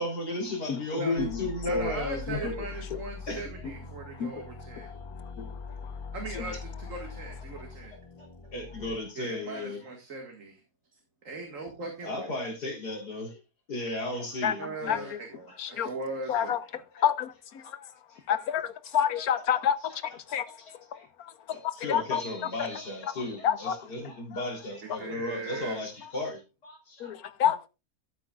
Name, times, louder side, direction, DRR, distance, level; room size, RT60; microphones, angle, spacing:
voice 1, 0.0-2.5 3.3-3.5 8.2-9.8 12.0-13.4 13.7-15.1 15.7-15.8 17.0-17.1 17.6-17.7 18.1-18.5 18.8-19.3 19.6-19.7 20.3-21.1 21.5-27.1, left 1 dB, 85° left, 4.2 m, -35 dB
voice 2, 0.7-1.4 1.7-1.9 2.3-2.5 4.2-4.3 6.4-6.5 14.4-14.5 14.9-15.0 15.6-15.9 16.3-16.6 17.0-17.3 18.3-18.7 18.9-19.7 20.3-20.4 21.8-22.2 23.4-23.7 27.0-27.7, left 8 dB, 70° left, 1.4 m, -27 dB
sound 1, 1.2-9.0, left 4 dB, 25° left, 2.5 m, -42 dB
voice 3, 1.7-4.9 6.1-7.9 9.2-10.6 11.2-12.3 14.6-16.8 25.0-25.8, right 3 dB, 55° right, 2.2 m, -39 dB
13.5 x 9.1 x 2.4 m
omnidirectional pair, 1.7 m